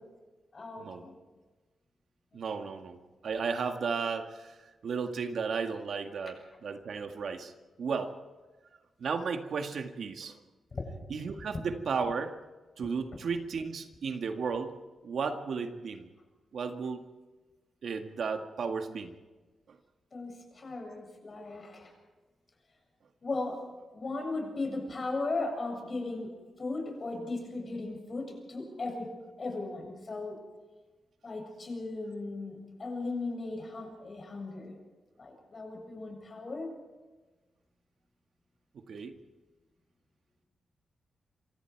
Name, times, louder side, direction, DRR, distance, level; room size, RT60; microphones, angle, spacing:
voice 1, 0.5-1.2 2.5-2.7 10.7-10.9 20.1-21.9 23.2-23.6 23.9-29.1 29.4-30.4 31.2-34.7 35.2-36.7, left 3 dB, 40° left, 2 dB, 7.6 m, -37 dB
voice 2, 2.3-3.0 3.2-4.6 4.8-7.5 7.8-8.1 9.0-10.4 11.1-12.3 12.8-14.8 15.0-16.1 16.5-17.0 17.8-19.2 19.7-19.8 21.4-21.5 38.7-39.2, right 5 dB, 65° right, 5 dB, 1.8 m, -34 dB
27.5 x 24.5 x 4.7 m, 1.2 s
wide cardioid pair, 125°, 0 cm